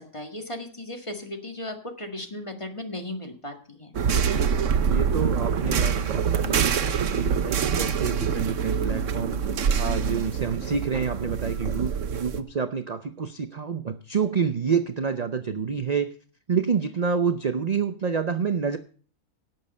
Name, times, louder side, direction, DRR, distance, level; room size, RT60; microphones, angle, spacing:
voice 1, 0.0-3.9, left 1 dB, 20° left, 4 dB, 1.8 m, -36 dB
sound 1, 3.9-12.4, right 7 dB, 60° right, 1.2 m, -25 dB
voice 2, 4.9-9.4 9.7-16.1 16.5-18.8, right 6 dB, 40° right, 9 dB, 0.6 m, -28 dB
17.5 x 7.4 x 5.4 m, 0.43 s
omnidirectional pair, 1.5 m